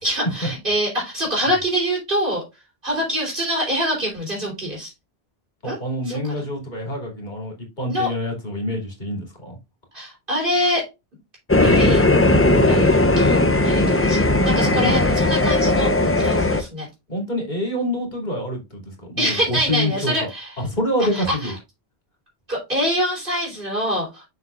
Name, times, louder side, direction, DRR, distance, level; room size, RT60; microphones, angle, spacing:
voice 1, 0.0-2.4 2.8-4.9 5.6-5.8 6.1-6.4 7.9-8.1 9.9-10.9 11.6-12.0 12.7-15.9 16.2-16.9 19.2-20.6 21.0-21.5 22.5-24.2, equal, 55° right, 4.2 m, -25 dB
voice 2, 5.6-9.5 14.7-15.0 17.1-18.8 19.1-20.3 20.6-21.5, left 1 dB, 45° left, 2.7 m, -26 dB
sound 1, 11.5-16.6, left 2 dB, 15° left, 0.5 m, -17 dB
6.8 x 6.8 x 2.4 m
omnidirectional pair, 1.1 m